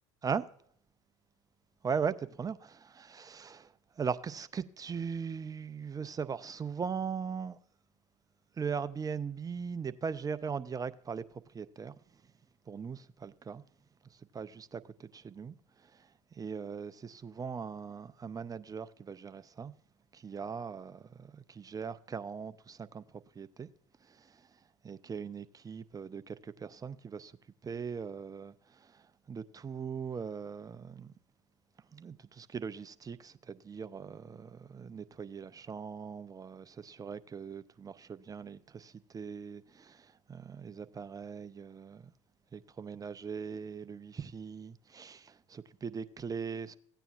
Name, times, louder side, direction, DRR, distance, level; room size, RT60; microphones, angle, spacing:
voice 1, 1.8-7.6 8.6-11.2 11.5-11.9 12.7-13.6 14.3-19.7 20.1-23.0 23.4-23.7 24.1-24.5 24.8-27.3 27.6-31.1 31.9-42.1 42.5-46.8, right 6 dB, 25° right, 0.5 m, -40 dB
15.0 x 9.1 x 2.4 m
hypercardioid pair, 65°, 16 cm